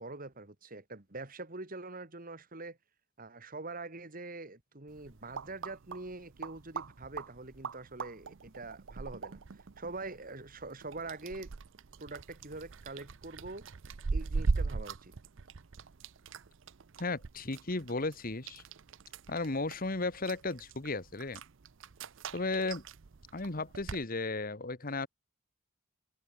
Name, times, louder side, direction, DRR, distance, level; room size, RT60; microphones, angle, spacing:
voice 1, 0.0-2.8 3.2-9.4 9.8-11.5 12.0-13.7 14.1-15.1, right 2 dB, 45° right, 2.4 m, -44 dB
sound 1, 4.9-24.0, right 4 dB, 65° right, 0.6 m, -41 dB
voice 2, 17.0-18.6 19.3-21.4 22.3-22.8 23.3-25.1, left 3 dB, 45° left, 1.5 m, -35 dB
head